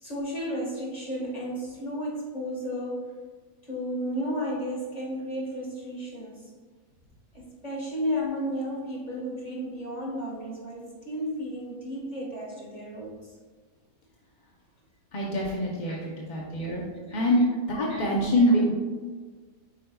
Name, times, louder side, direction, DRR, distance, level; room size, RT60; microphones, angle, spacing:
voice 1, 0.0-3.1 3.6-6.4 7.3-13.2 15.9-16.0 16.6-17.4 17.9-18.1, equal, 25° left, -3 dB, 1.5 m, -33 dB
voice 2, 15.1-16.8 17.1-17.4 17.7-18.7, equal, 45° left, -3 dB, 0.6 m, -25 dB
8.3 x 5.1 x 2.3 m, 1.5 s
omnidirectional pair, 1.7 m